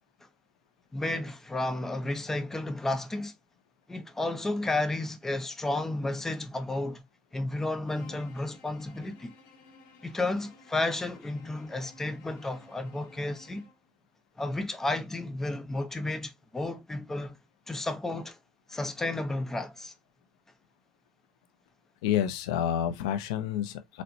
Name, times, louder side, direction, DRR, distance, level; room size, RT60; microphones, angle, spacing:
voice 1, 0.9-3.3 3.9-7.0 7.3-9.3 10.0-13.7 14.4-17.4 17.7-18.4 18.7-19.9, left 2 dB, 15° left, 0.6 m, -32 dB
Bowed string instrument, 7.8-13.9, left 3 dB, 70° left, 0.9 m, -56 dB
voice 2, 22.0-24.0, left 10 dB, 85° left, 0.5 m, -29 dB
4.2 x 2.1 x 2.6 m
supercardioid pair, 105°, 3 cm